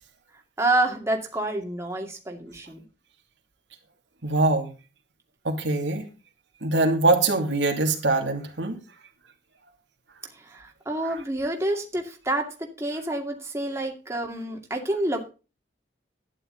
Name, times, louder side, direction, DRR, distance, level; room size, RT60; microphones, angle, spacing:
voice 1, 0.6-2.8 10.4-15.3, right 1 dB, 15° right, 1 dB, 2.3 m, -28 dB
voice 2, 4.2-4.7 5.4-6.0 6.6-8.8 11.0-11.2, right 2 dB, 80° right, 2 dB, 2.7 m, -23 dB
12.5 x 10.0 x 4.0 m, 0.32 s
head